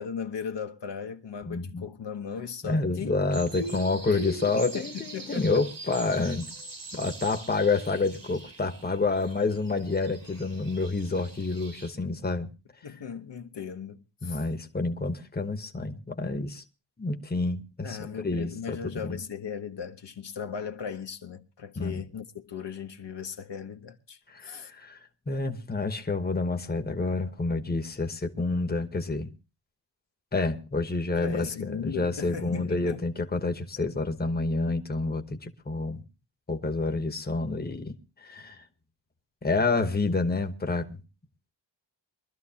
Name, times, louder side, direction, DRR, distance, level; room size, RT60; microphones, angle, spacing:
voice 1, 0.0-5.6 12.8-14.4 17.8-24.7 31.1-33.1, left 6 dB, 65° left, 1.1 m, -37 dB
voice 2, 1.4-1.9 2.6-6.5 6.9-12.5 14.2-16.6 17.0-19.2 21.8-22.0 24.3-29.3 30.3-36.0 36.5-38.6 39.4-41.0, left 3 dB, 20° left, 1.1 m, -29 dB
sound 1, 3.3-11.9, right 3 dB, 45° right, 2.3 m, -45 dB
23.0 x 12.5 x 2.8 m
wide cardioid pair, 125°, 45 cm